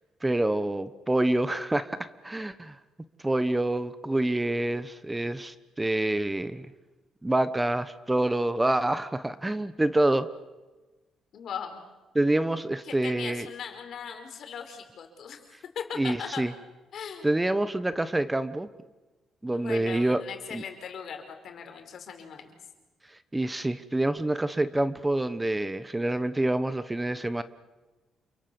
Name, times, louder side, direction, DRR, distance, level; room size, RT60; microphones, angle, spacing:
voice 1, 0.2-2.8 3.2-6.7 7.2-10.3 12.1-13.5 16.0-16.5 17.2-18.7 19.4-20.2 20.5-20.6 23.3-27.4, right 1 dB, 15° right, 13 dB, 1.1 m, -27 dB
voice 2, 11.3-11.8 12.8-15.4 15.7-16.5 16.9-17.4 19.5-22.5, left 7 dB, 65° left, 5 dB, 4.8 m, -39 dB
28.5 x 23.5 x 7.1 m, 1.2 s
cardioid pair, 90°, 0 cm